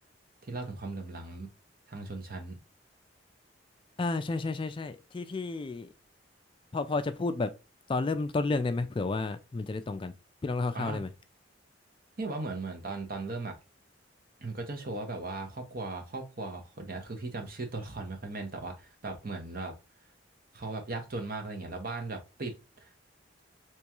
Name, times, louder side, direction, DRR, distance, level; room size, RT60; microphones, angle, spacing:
voice 1, 0.4-1.5 1.9-2.6 10.7-11.0 12.2-13.6 14.4-19.7 20.5-22.9, right 3 dB, 50° right, 0.9 m, -37 dB
voice 2, 4.0-5.9 6.7-7.5 7.9-10.1 10.4-11.1, left 3 dB, 30° left, 0.3 m, -31 dB
3.5 x 3.0 x 2.9 m
head